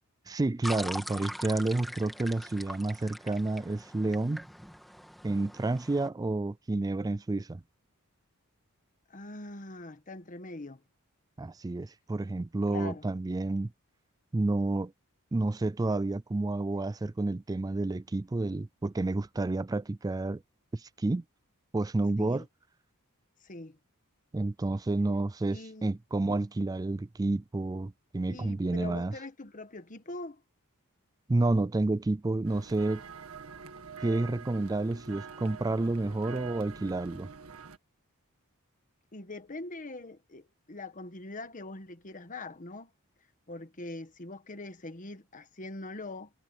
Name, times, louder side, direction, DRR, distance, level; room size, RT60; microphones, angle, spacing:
voice 1, 0.3-4.5 5.2-7.6 11.4-13.7 14.3-14.9 15.3-20.4 20.7-21.2 21.7-22.4 24.3-29.1 31.3-33.0 34.0-37.3, right 2 dB, 15° right, 0.3 m, -30 dB
sound 1, 0.6-6.1, equal, ahead, 1.7 m, -42 dB
voice 2, 9.1-10.8 12.7-13.1 22.2-22.4 23.4-23.8 25.5-25.9 28.2-30.4 39.1-42.9 43.5-46.3, left 2 dB, 35° left, 1.3 m, -42 dB
sound 2, 32.4-37.8, right 5 dB, 75° right, 1.9 m, -45 dB
head